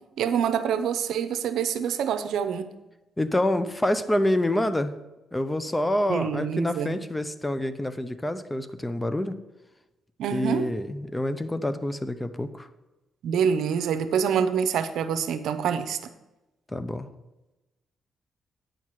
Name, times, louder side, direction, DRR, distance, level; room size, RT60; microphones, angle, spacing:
voice 1, 0.2-2.7 6.1-7.0 10.2-10.7 13.2-16.0, right 7 dB, 80° right, 10 dB, 0.7 m, -26 dB
voice 2, 3.2-5.0 5.3-9.4 10.3-12.7 16.7-17.1, left 1 dB, 15° left, 11 dB, 0.7 m, -27 dB
9.3 x 4.7 x 7.4 m, 1.0 s
cardioid pair, 85°, 0 cm